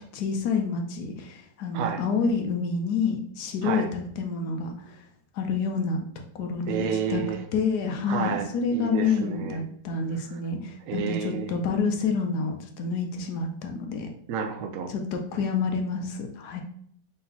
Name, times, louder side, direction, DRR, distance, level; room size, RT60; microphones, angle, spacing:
voice 1, 0.1-5.0 5.3-6.0 6.3-6.8 7.1-7.2 7.5-14.1 14.9-16.6, left 5 dB, 70° left, 4 dB, 1.0 m, -28 dB
voice 2, 6.7-7.4 8.1-9.6 10.3-10.4 10.9-11.5 14.3-14.9, right 7 dB, 80° right, 5 dB, 0.7 m, -30 dB
3.9 x 3.9 x 2.7 m, 0.63 s
omnidirectional pair, 2.0 m